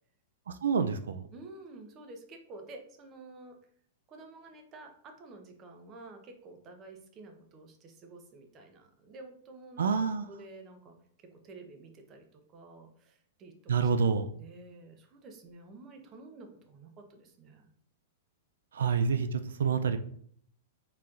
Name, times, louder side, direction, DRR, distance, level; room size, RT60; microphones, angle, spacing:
voice 1, 0.5-1.3 9.8-10.3 13.7-14.3 18.7-20.0, right 5 dB, 90° right, 9 dB, 0.3 m, -28 dB
voice 2, 1.3-3.5 4.1-13.7 14.3-17.7, right 2 dB, 30° right, 5 dB, 0.8 m, -50 dB
4.2 x 3.8 x 2.5 m, 0.62 s
hypercardioid pair, 140°, 0 cm